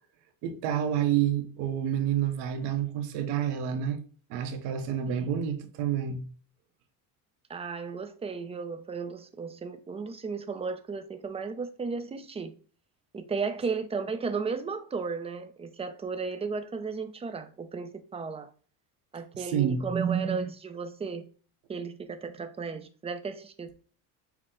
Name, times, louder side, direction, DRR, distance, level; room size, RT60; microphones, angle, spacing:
voice 1, 0.4-4.0 4.3-6.2 19.3-19.9, right 9 dB, 80° right, 1.0 m, -29 dB
voice 2, 5.1-5.4 7.5-12.5 13.1-18.5 19.1-21.2 21.7-23.7, right 5 dB, 15° right, 0.5 m, -34 dB
6.0 x 2.1 x 3.7 m
cardioid pair, 125°, 41 cm